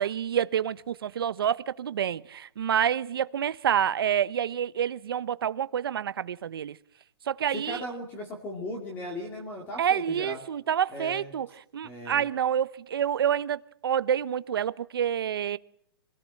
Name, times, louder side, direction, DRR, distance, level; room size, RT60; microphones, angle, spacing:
voice 1, 0.0-6.8 7.3-7.8 9.8-11.5 11.7-15.6, right 9 dB, 60° right, 0.9 m, -28 dB
voice 2, 7.5-10.4 10.9-11.3 11.8-12.3, left 1 dB, 15° left, 2.3 m, -37 dB
26.0 x 17.0 x 7.7 m
hypercardioid pair, 170°, 14 cm